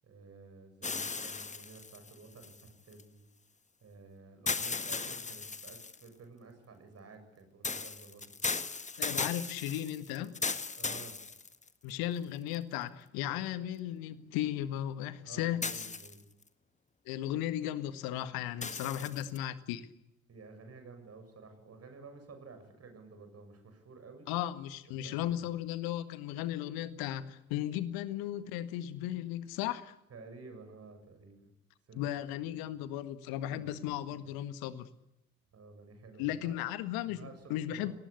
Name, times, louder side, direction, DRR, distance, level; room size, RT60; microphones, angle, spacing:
voice 1, 0.0-3.2 3.8-8.3 9.1-9.3 10.8-11.2 15.2-16.2 18.8-19.2 20.3-24.3 25.0-25.6 30.1-31.5 31.9-32.1 32.3-32.7 33.4-34.3 35.5-36.6 37.0-37.9, right 4 dB, 35° right, 7.5 m, -52 dB
sound 1, 0.8-3.0 4.5-6.1 7.6-11.9 12.5-12.6 15.6-16.4 18.6-19.4, left 4 dB, 15° left, 1.6 m, -37 dB
voice 2, 9.0-10.4 11.8-15.6 17.0-19.9 24.3-29.9 31.9-34.9 36.2-37.9, left 12 dB, 60° left, 1.8 m, -36 dB
29.5 x 19.5 x 8.4 m
figure-of-eight pair, 55°, 41 cm